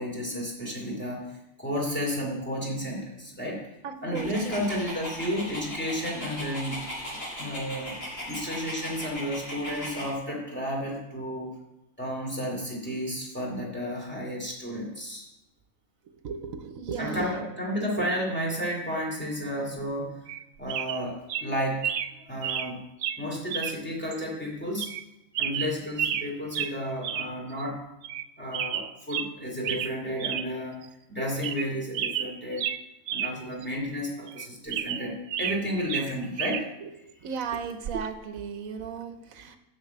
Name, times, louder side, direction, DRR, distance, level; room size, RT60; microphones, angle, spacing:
voice 1, 0.0-3.6 4.0-6.9 7.4-8.0 8.3-11.5 12.0-15.2 17.0-20.2 20.6-21.9 22.3-22.8 23.2-24.9 25.4-27.9 28.4-30.8 31.1-32.7 33.1-36.7, equal, 10° left, -3 dB, 2.5 m, -32 dB
voice 2, 3.8-4.7 7.6-7.7 16.2-17.4 18.0-18.1 37.2-39.6, right 6 dB, 85° right, 8 dB, 1.2 m, -35 dB
Dog, 4.1-10.1, equal, 70° left, 3.6 m, -38 dB
sound 1, 20.3-20.4 20.7-21.0 21.3-21.5 21.8-22.1 22.4-22.7 23.0-23.2 23.5-23.8 24.1-24.2 24.8-25.0 25.3-26.3 26.5-26.7 27.0-27.3 27.6-27.7 28.0-28.3 28.5-29.3 29.6-29.9 30.2-30.5 30.8-30.9 31.3-31.7 31.9-33.3 33.6-33.7 34.3-35.6 35.9-36.6 37.8-38.1, right 9 dB, 65° right, 0.8 m, -31 dB
7.2 x 6.5 x 8.0 m, 0.92 s
omnidirectional pair, 1.4 m